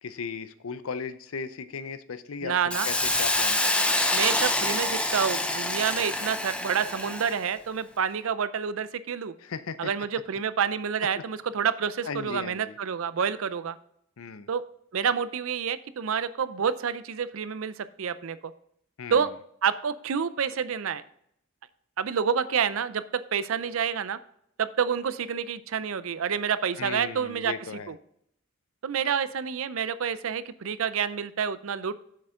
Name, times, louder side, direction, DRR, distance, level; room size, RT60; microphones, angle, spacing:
voice 1, 0.0-4.1 9.4-9.9 11.1-11.2 12.0-12.8 14.2-14.5 19.0-19.3 26.8-27.9, left 5 dB, 75° left, 13 dB, 0.6 m, -37 dB
voice 2, 2.4-2.9 4.1-9.3 9.8-13.8 14.5-14.6 14.9-18.5 19.1-19.3 19.6-21.0 22.0-24.2 24.6-27.5 27.9-28.0 28.8-31.9, right 7 dB, 70° right, 15 dB, 0.5 m, -28 dB
Hiss, 2.7-7.4, left 1 dB, 5° left, 0.6 m, -26 dB
7.8 x 6.6 x 3.7 m, 0.71 s
head